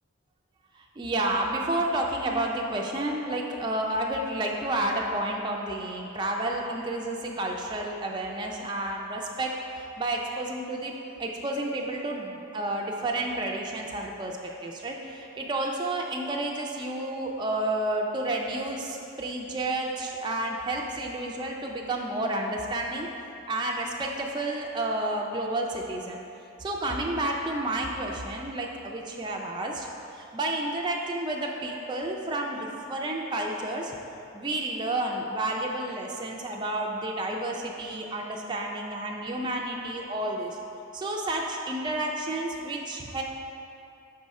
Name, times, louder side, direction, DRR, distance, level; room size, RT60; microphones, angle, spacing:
voice 1, 0.8-23.1 23.5-26.2 26.6-29.9 30.1-33.9 34.3-40.6 40.9-43.2, right 1 dB, 20° right, -1 dB, 0.4 m, -30 dB
6.0 x 4.7 x 4.2 m, 2.7 s
head